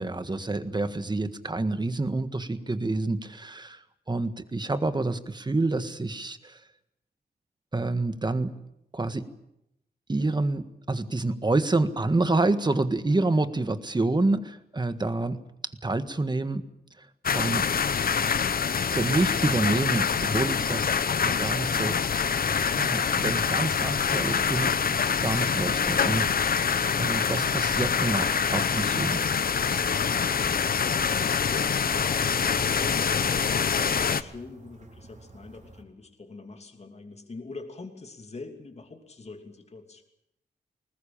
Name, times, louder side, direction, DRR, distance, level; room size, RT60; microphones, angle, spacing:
voice 1, 0.0-6.6 7.7-8.6 8.9-9.3 10.1-15.4 15.6-16.6 17.0-17.1 17.3-17.7 18.9-20.9 21.2-22.0 22.7-26.6 27.0-29.2, right 2 dB, 25° right, 10 dB, 1.6 m, -28 dB
sound 1, 17.2-34.2, left 6 dB, 60° left, 0.9 m, -25 dB
sound 2, 27.6-35.8, right 2 dB, 45° right, 4.4 m, -51 dB
voice 2, 29.8-30.1 32.2-40.0, left 3 dB, 40° left, 5 dB, 2.8 m, -44 dB
20.5 x 20.0 x 8.7 m, 0.82 s
wide cardioid pair, 90°, 17 cm